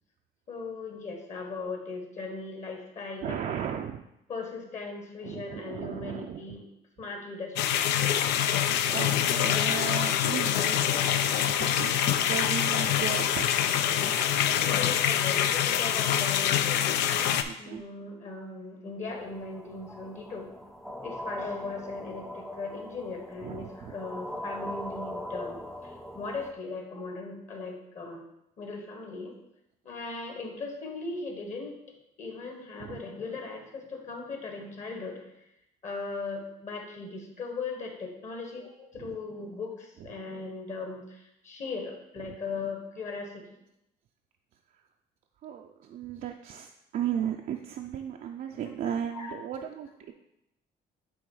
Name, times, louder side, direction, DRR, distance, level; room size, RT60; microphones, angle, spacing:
voice 1, 0.5-3.4 4.3-6.6 7.0-8.0 14.5-16.9 17.6-20.5 21.0-28.2 28.6-29.3 29.8-31.8 32.2-35.2 35.8-43.6 48.8-49.3, left 4 dB, 45° left, 2 dB, 1.5 m, -38 dB
voice 2, 3.2-4.0 5.2-6.6 8.2-8.4 8.9-11.9 12.2-13.5 17.5-17.8 23.4-24.0 32.8-33.0 39.0-39.2 40.0-40.1 42.2-42.4 45.4-50.1, right 9 dB, 55° right, 3 dB, 0.5 m, -36 dB
sound 1, 7.6-17.4, left 10 dB, 80° left, 0.5 m, -25 dB
sound 2, 19.1-26.5, left 1 dB, ahead, 0.5 m, -41 dB
8.7 x 3.1 x 4.8 m, 0.84 s
cardioid pair, 110°, 17 cm